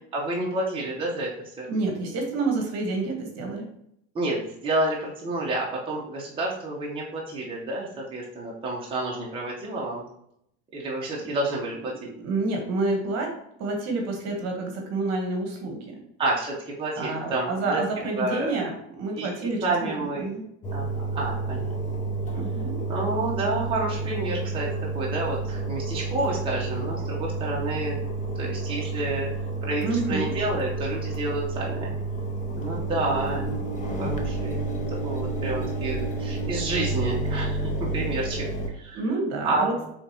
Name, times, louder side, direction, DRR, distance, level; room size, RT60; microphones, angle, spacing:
voice 1, 0.1-1.3 1.6-1.7 4.1-10.0 10.7-12.1 16.2-17.8 18.1-18.5 19.2-20.3 20.7-21.9 22.9-24.7 24.9-28.0 28.4-29.3 29.6-31.9 32.5-33.6 34.0-34.6 35.0-38.4 38.8-39.0 39.4-39.7, right 2 dB, 15° right, -4 dB, 0.9 m, -29 dB
voice 2, 1.7-3.7 11.2-11.3 12.0-13.3 13.6-16.0 17.0-20.4 22.3-22.8 29.8-30.3 38.9-39.8, right 3 dB, 45° right, 2 dB, 1.2 m, -29 dB
Engine, 20.6-38.7, right 3 dB, 20° left, 0.6 m, -30 dB
4.6 x 3.5 x 2.9 m, 0.74 s
supercardioid pair, 125°, 34 cm